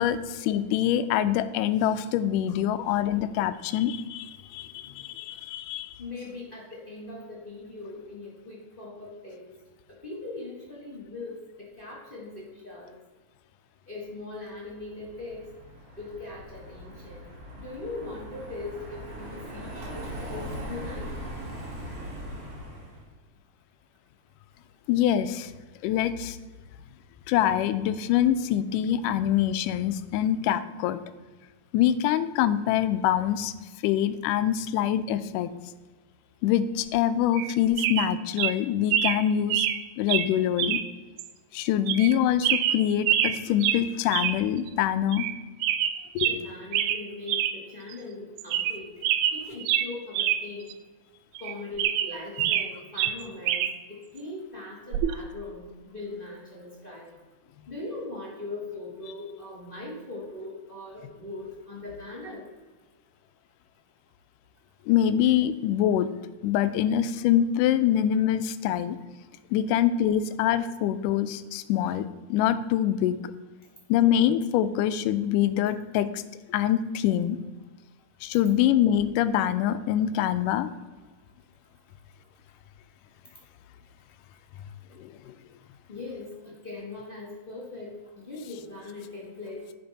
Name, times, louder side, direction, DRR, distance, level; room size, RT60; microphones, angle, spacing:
voice 1, 0.0-5.9 24.9-25.5 25.8-26.4 27.3-31.0 31.7-33.5 33.8-35.5 36.4-39.7 40.0-40.8 41.5-45.3 46.2-46.3 64.9-66.1 66.4-69.0 69.5-72.1 72.3-73.2 73.9-76.2 76.5-77.4 78.2-80.7 85.0-85.3, left 10 dB, 85° left, 12 dB, 2.1 m, -25 dB
voice 2, 2.7-3.3 4.6-5.2 6.0-9.5 9.9-12.9 13.9-15.4 16.0-17.3 17.6-21.1 46.2-49.0 49.3-50.7 51.4-57.1 57.7-62.4 85.9-89.7, left 2 dB, 35° left, -4 dB, 0.8 m, -40 dB
Car passing by, 14.5-23.1, equal, 50° right, 3.3 m, -40 dB
sound 1, 37.3-37.5 37.8-38.1 38.4-38.5 38.9-39.2 39.5-39.8 40.1-40.3 40.6-40.8 41.2-41.3 41.9-42.1 42.4-43.4 43.6-43.8 44.1-44.4 44.7-44.8 45.1-45.3 45.6-46.4 46.7-47.0 47.3-47.5 47.9-48.0 48.4-48.8 49.0-50.4 50.7-50.8 51.4-52.7 53.0-53.7 54.9-55.1, right 11 dB, 80° right, 1.9 m, -25 dB
10.5 x 5.8 x 4.0 m, 1.3 s
omnidirectional pair, 3.6 m